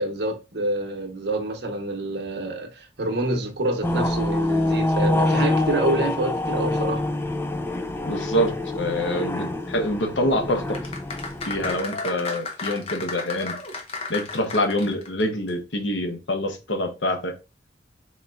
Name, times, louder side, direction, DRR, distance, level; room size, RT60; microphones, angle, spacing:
voice 1, 0.0-7.0, right 1 dB, 70° right, 0.9 m, -27 dB
sound 1, 3.8-11.8, left 1 dB, 10° left, 0.3 m, -25 dB
voice 2, 8.0-10.8 11.5-13.6 14.1-17.3, left 1 dB, 85° left, 1.0 m, -26 dB
sound 2, 10.7-15.2 15.5-15.6, left 3 dB, 30° left, 0.8 m, -33 dB
4.1 x 3.8 x 2.3 m
head